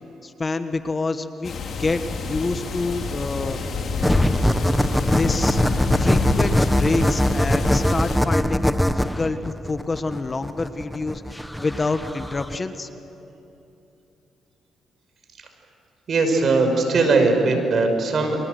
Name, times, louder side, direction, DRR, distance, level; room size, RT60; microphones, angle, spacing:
voice 1, 0.2-3.6 4.4-4.5 5.1-5.6 6.0-12.9, left 3 dB, 30° left, 9 dB, 1.3 m, -27 dB
sound 1, 1.4-8.2, left 4 dB, 55° left, 3.6 m, -27 dB
sound 2, 4.0-12.6, equal, ahead, 0.8 m, -22 dB
voice 2, 16.1-18.4, right 3 dB, 50° right, 5 dB, 5.4 m, -19 dB
30.0 x 25.0 x 7.9 m, 3.0 s
cardioid pair, 90°, 0 cm